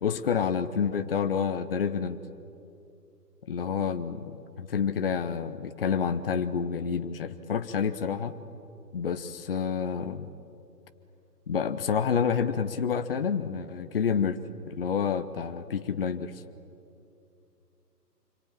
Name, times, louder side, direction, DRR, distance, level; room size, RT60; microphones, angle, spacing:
voice 1, 0.0-2.2 3.4-8.4 8.9-10.3 11.5-14.4 14.7-16.4, left 6 dB, 35° left, 10 dB, 0.9 m, -29 dB
26.0 x 23.0 x 8.9 m, 2.7 s
figure-of-eight pair, 145°, 49 cm